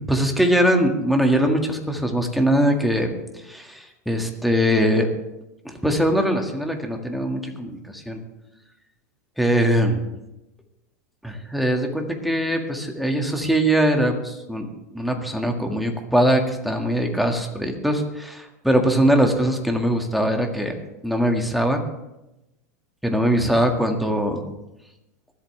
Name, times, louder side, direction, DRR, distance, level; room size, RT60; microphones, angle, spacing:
voice 1, 0.1-3.1 3.4-5.1 5.7-8.2 9.4-10.0 11.2-14.7 14.9-20.7 21.0-21.8 23.0-24.5, equal, ahead, 2 dB, 1.9 m, -21 dB
24.5 x 8.5 x 3.3 m, 0.94 s
supercardioid pair, 115°, 9 cm